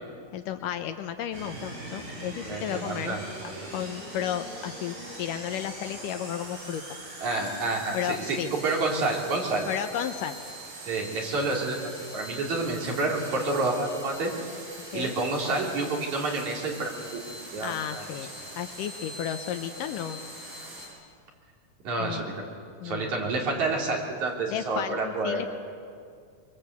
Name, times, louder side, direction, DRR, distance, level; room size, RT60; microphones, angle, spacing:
voice 1, 0.3-3.2 3.7-6.8 7.9-8.5 9.7-10.4 14.9-15.2 17.6-18.3 18.6-20.2 22.0-22.3 22.8-23.3 24.5-25.5, left 10 dB, 75° left, 8 dB, 2.4 m, -33 dB
sound 1, 1.3-20.9, right 1 dB, 90° right, 9.6 m, -42 dB
voice 2, 2.5-3.2 7.2-8.4 8.6-9.6 10.9-11.8 12.1-14.3 14.9-17.2 17.5-18.0 21.8-22.4 22.8-25.5, right 3 dB, 60° right, -1 dB, 4.8 m, -29 dB
24.0 x 23.0 x 8.2 m, 2.2 s
omnidirectional pair, 3.9 m